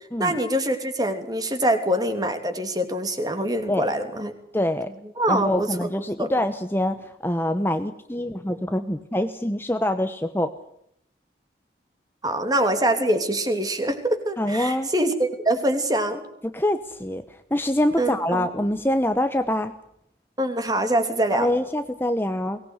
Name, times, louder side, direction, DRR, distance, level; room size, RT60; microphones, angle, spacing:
voice 1, 0.2-4.3 5.2-5.7 6.2-6.3 12.2-16.2 18.0-18.5 20.4-21.5, right 1 dB, 20° right, 7 dB, 3.0 m, -24 dB
voice 2, 4.5-4.9 5.3-10.5 14.4-14.9 16.5-19.7 21.3-22.6, left 1 dB, 15° left, 8 dB, 1.0 m, -25 dB
23.0 x 19.5 x 8.2 m, 0.74 s
head